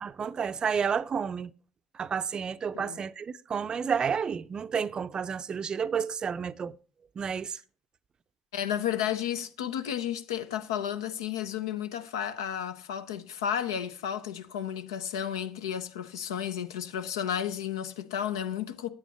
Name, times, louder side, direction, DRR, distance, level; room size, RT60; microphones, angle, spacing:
voice 1, 0.0-1.5 1.9-6.7 7.2-7.6, right 6 dB, 35° right, 0.5 m, -31 dB
voice 2, 8.5-18.9, left 9 dB, 75° left, 0.8 m, -32 dB
9.0 x 8.8 x 4.2 m
figure-of-eight pair, 60°, 2 cm